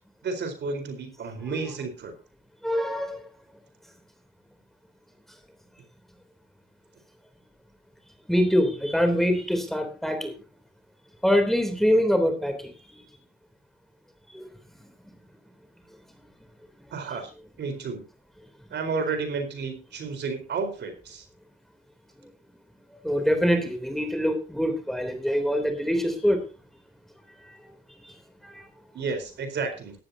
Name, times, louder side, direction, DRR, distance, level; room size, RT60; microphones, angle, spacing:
voice 1, 0.2-2.1 16.9-17.3 17.6-18.0 18.7-21.2 28.9-29.9, right 4 dB, 60° right, 7 dB, 4.3 m, -31 dB
voice 2, 2.6-3.2 8.3-10.3 11.2-13.0 14.3-14.5 23.0-26.4 27.5-27.6 28.0-28.1 28.4-28.6, equal, ahead, 7 dB, 3.2 m, -24 dB
17.0 x 13.0 x 2.8 m, 0.33 s
cardioid pair, 90°, 20 cm